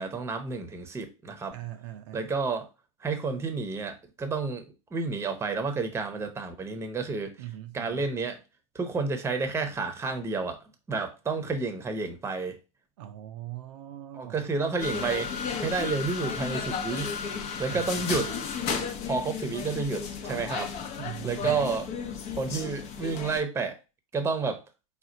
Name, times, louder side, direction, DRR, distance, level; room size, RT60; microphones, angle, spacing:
voice 1, 0.0-1.5 2.1-2.7 3.0-4.6 4.9-7.3 7.7-8.4 8.7-10.6 10.9-12.6 14.1-17.1 17.6-18.3 19.1-20.8 21.2-21.9 22.3-23.8 24.1-24.6, right 4 dB, 15° right, 0.9 m, -30 dB
voice 2, 1.5-2.3 7.4-8.1 13.0-14.5 17.7-18.4 21.0-21.6, right 13 dB, 60° right, 0.5 m, -41 dB
sound 1, 14.8-23.4, left 6 dB, 40° left, 0.8 m, -34 dB
4.9 x 2.4 x 3.8 m
hypercardioid pair, 95°, 18 cm